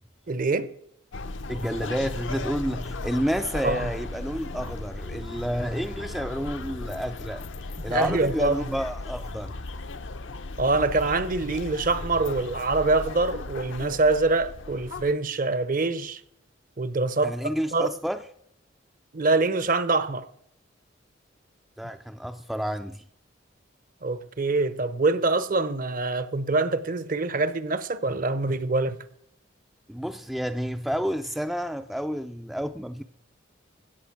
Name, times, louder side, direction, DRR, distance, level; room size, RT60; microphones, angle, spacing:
voice 1, 0.3-0.7 3.6-3.9 7.9-8.5 10.6-16.2 16.8-17.3 17.7-17.9 19.1-20.3 24.0-29.0, right 3 dB, 45° right, 0.7 m, -25 dB
sound 1, 1.1-15.1, left 3 dB, 75° left, 0.8 m, -36 dB
voice 2, 1.5-7.4 7.8-9.5 17.2-18.2 21.8-23.0 29.9-33.0, equal, ahead, 0.4 m, -30 dB
16.5 x 7.1 x 5.9 m
head